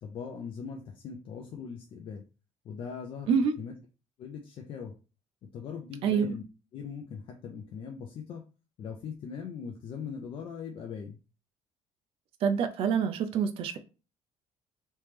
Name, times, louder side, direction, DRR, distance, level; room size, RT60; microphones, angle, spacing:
voice 1, 0.0-2.2 2.6-3.3 3.6-3.7 4.2-4.9 5.5-6.4 6.7-8.4 8.8-11.2, left 6 dB, 45° left, 0.5 m, -40 dB
voice 2, 6.0-6.3 12.4-13.8, right 6 dB, 50° right, 0.4 m, -26 dB
3.3 x 3.0 x 3.3 m
cardioid pair, 160°, 12 cm